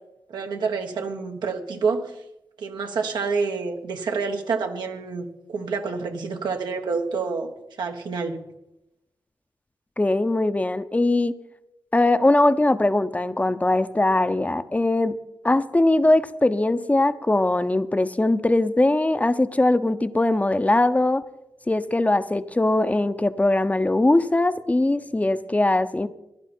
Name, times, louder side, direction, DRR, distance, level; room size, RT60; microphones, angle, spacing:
voice 1, 0.3-2.1 2.6-7.5 7.8-8.4, right 4 dB, 85° right, 3 dB, 1.4 m, -28 dB
voice 2, 10.0-11.3 11.9-15.2 15.4-21.2 21.7-26.1, left 2 dB, 20° left, 11 dB, 0.7 m, -21 dB
16.5 x 11.0 x 4.4 m, 0.89 s
cardioid pair, 50°, 7 cm